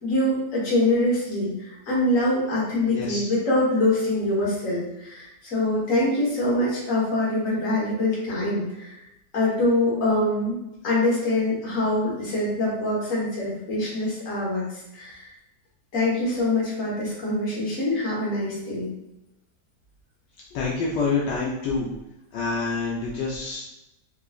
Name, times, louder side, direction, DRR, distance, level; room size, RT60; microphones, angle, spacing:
voice 1, 0.0-1.5 1.9-8.9 9.3-10.6 10.8-14.7 14.9-15.2 15.9-18.9, left 1 dB, 50° left, -6 dB, 1.5 m, -24 dB
voice 2, 2.8-3.2 20.5-21.9 22.3-23.6, left 4 dB, 80° left, -5 dB, 1.3 m, -27 dB
3.7 x 2.8 x 2.4 m, 0.91 s
omnidirectional pair, 1.8 m